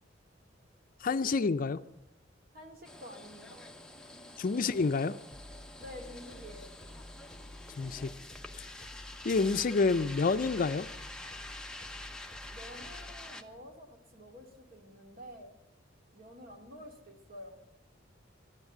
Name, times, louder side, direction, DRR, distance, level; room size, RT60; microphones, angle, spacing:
voice 1, 1.0-1.8 4.4-5.2 7.8-8.1 9.2-10.9, left 4 dB, 45° left, 0.5 m, -28 dB
voice 2, 2.5-3.6 4.1-4.2 5.8-6.8 12.5-15.5 16.1-17.6, left 1 dB, 50° right, 2.3 m, -49 dB
sound 1, 2.8-13.4, left 2 dB, 5° left, 0.8 m, -47 dB
sound 2, 5.3-13.3, left 1 dB, 20° left, 1.2 m, -51 dB
13.0 x 9.9 x 7.8 m
head